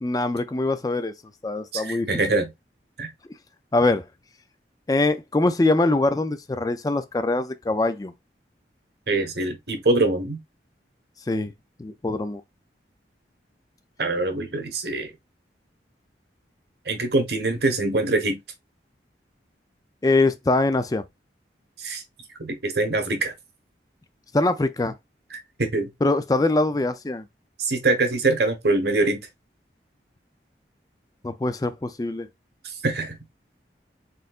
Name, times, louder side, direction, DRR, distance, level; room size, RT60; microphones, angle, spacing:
voice 1, 0.0-1.1 1.4-2.1 3.7-4.0 4.9-8.1 11.3-11.5 11.8-12.4 20.0-21.0 24.3-24.9 26.0-27.2 31.2-32.3, left 2 dB, 20° left, 0.4 m, -23 dB
voice 2, 1.7-2.5 3.0-3.1 9.1-10.4 14.0-15.1 16.8-18.4 21.8-22.0 22.4-23.3 25.3-25.9 27.6-29.3 32.6-33.2, right 2 dB, 70° right, 1.2 m, -24 dB
4.3 x 3.9 x 2.4 m
head